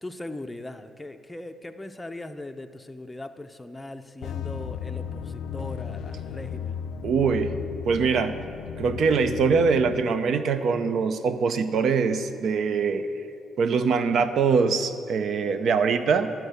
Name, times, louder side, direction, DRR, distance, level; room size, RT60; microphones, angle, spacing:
voice 1, 0.0-6.8, left 1 dB, 10° left, 6 dB, 0.5 m, -39 dB
sound 1, 4.2-10.0, left 7 dB, 80° left, 0.3 m, -35 dB
voice 2, 7.0-7.5 7.8-8.4 8.8-13.1 13.6-16.3, right 5 dB, 65° right, 11 dB, 0.6 m, -23 dB
12.0 x 4.5 x 8.1 m, 2.6 s
cardioid pair, 90°, 0 cm